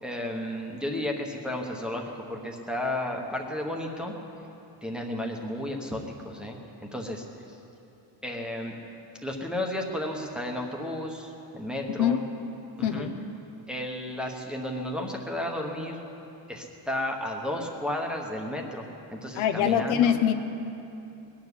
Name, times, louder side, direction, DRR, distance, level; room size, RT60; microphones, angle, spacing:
voice 1, 0.0-4.1 4.8-6.6 6.8-7.6 8.2-8.8 9.2-12.2 12.8-13.1 13.7-16.0 16.5-20.1, left 1 dB, ahead, 0 dB, 1.0 m, -33 dB
voice 2, 12.8-13.1 19.3-20.3, left 9 dB, 75° left, 8 dB, 1.0 m, -23 dB
20.0 x 7.2 x 9.8 m, 2.8 s
cardioid pair, 180°, 48 cm